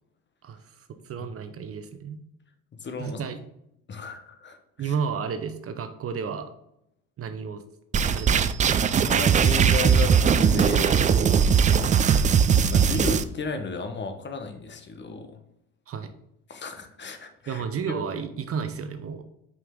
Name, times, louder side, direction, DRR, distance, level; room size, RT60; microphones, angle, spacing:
voice 1, 0.4-2.2 3.0-3.4 4.8-6.5 7.2-7.6 8.1-8.8 15.9-16.1 17.5-19.2, right 6 dB, 40° right, 9 dB, 0.8 m, -32 dB
voice 2, 2.8-3.2 3.9-4.9 8.9-11.1 11.8-15.4 16.5-18.0, left 3 dB, 30° left, 7 dB, 1.0 m, -34 dB
sound 1, 7.9-13.2, right 7 dB, 20° right, 0.3 m, -20 dB
5.5 x 5.4 x 3.7 m, 0.78 s
hypercardioid pair, 80°, 36 cm